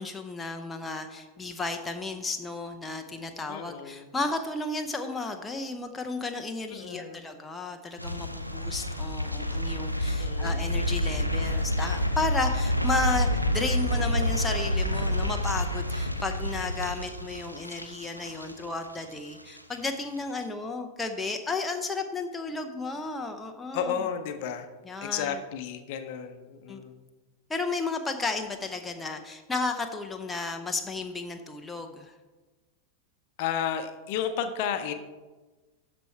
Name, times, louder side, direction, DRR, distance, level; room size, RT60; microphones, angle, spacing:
voice 1, 0.0-24.0 24.8-25.4 26.7-26.8 27.5-32.1, left 3 dB, 10° left, 4 dB, 0.6 m, -33 dB
voice 2, 3.5-4.1 6.7-7.3 10.2-10.6 23.7-24.7 25.0-27.0 33.4-34.9, left 8 dB, 50° left, 8 dB, 0.7 m, -32 dB
sound 1, 8.0-19.1 19.4-19.8 20.1-20.2, equal, 90° right, 0.5 m, -28 dB
12.5 x 4.3 x 4.6 m, 1.2 s
figure-of-eight pair, 90°, 0 cm